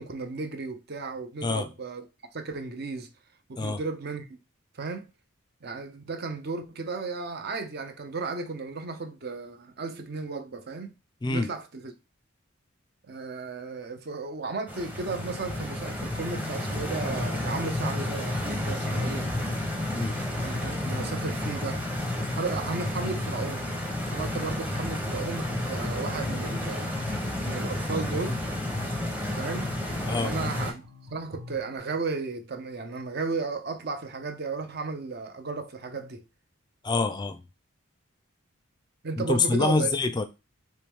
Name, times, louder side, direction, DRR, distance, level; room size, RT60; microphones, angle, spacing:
voice 1, 0.0-2.1 2.3-3.1 3.5-4.4 4.7-5.1 5.6-11.0 11.3-11.9 13.1-19.7 20.4-21.9 22.3-23.7 24.1-27.0 27.4-28.4 29.3-29.7 30.1-30.8 31.1-36.2 39.0-39.9, right 4 dB, 45° right, 0.6 m, -34 dB
Stream, 14.7-30.7, left 1 dB, 10° right, 0.8 m, -31 dB
sound 1, 30.3-31.8, left 1 dB, 85° right, 1.4 m, -50 dB
voice 2, 36.8-37.5 39.2-40.2, left 3 dB, 20° left, 0.4 m, -26 dB
4.7 x 3.1 x 3.5 m
head